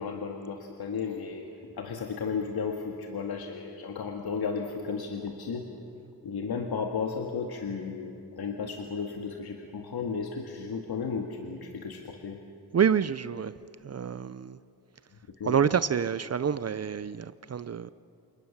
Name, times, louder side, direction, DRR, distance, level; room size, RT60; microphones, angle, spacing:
voice 1, 0.0-1.5 1.8-5.7 6.2-12.4 15.4-15.7, left 5 dB, 70° left, 2.0 m, -34 dB
voice 2, 12.7-13.5 13.8-14.6 15.4-17.9, right 7 dB, 40° right, 0.6 m, -27 dB
29.0 x 28.0 x 7.3 m
wide cardioid pair, 130°, 39 cm